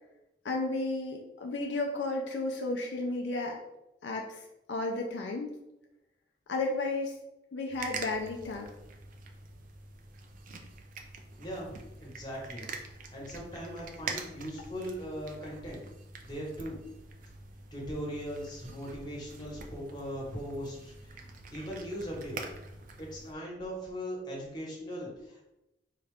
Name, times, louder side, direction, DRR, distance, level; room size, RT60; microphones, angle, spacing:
voice 1, 0.4-3.6 4.0-5.5 6.5-7.2 7.5-8.7, left 2 dB, 75° left, 1 dB, 0.5 m, -33 dB
sound 1, 7.7-23.4, right 4 dB, 45° right, 0.4 m, -45 dB
voice 2, 11.4-12.7 13.1-15.8 16.2-16.8 17.7-22.4 23.0-25.4, equal, 25° left, -4 dB, 1.1 m, -39 dB
4.1 x 2.4 x 3.4 m, 0.91 s
head